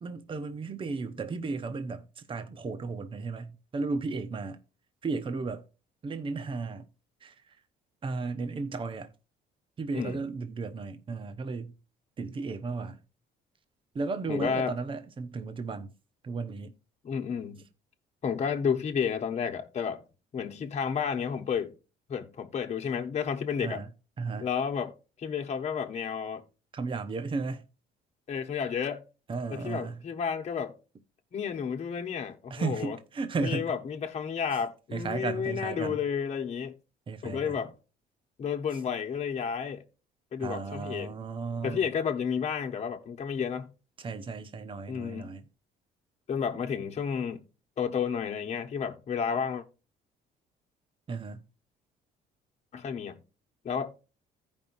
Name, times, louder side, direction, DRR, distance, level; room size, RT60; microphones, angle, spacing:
voice 1, 0.0-4.6 5.0-5.6 6.0-6.9 7.2-7.5 8.0-9.1 9.8-11.7 12.2-13.0 13.9-15.9 16.2-16.7 23.6-23.9 24.2-24.5 26.7-27.6 29.3-30.0 32.5-33.7 34.9-36.0 37.1-37.6 40.4-41.9 44.0-45.4 51.1-51.4, right 4 dB, 30° right, 0.9 m, -34 dB
voice 2, 14.3-14.8 17.0-17.6 18.2-20.0 20.3-21.7 22.1-23.8 24.4-26.4 28.3-29.0 29.5-30.7 31.3-33.0 33.4-36.7 37.2-37.7 38.4-39.8 40.3-41.1 41.6-43.7 44.9-45.3 46.3-47.4 47.8-49.6 52.7-53.2 53.6-53.9, left 7 dB, 40° left, 1.2 m, -31 dB
15.0 x 5.3 x 2.6 m
cardioid pair, 110°, 17 cm